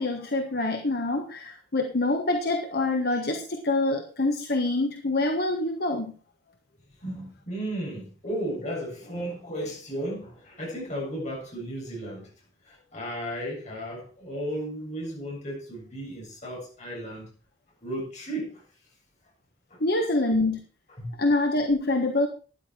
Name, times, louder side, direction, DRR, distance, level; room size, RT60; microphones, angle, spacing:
voice 1, 0.0-6.2 19.8-20.6 21.2-22.3, left 2 dB, 60° left, 1.4 m, -25 dB
voice 2, 7.0-12.3 12.6-17.3 17.8-18.7 19.7-19.8 21.0-21.2, equal, 40° left, 7.7 m, -34 dB
13.5 x 10.0 x 4.5 m
head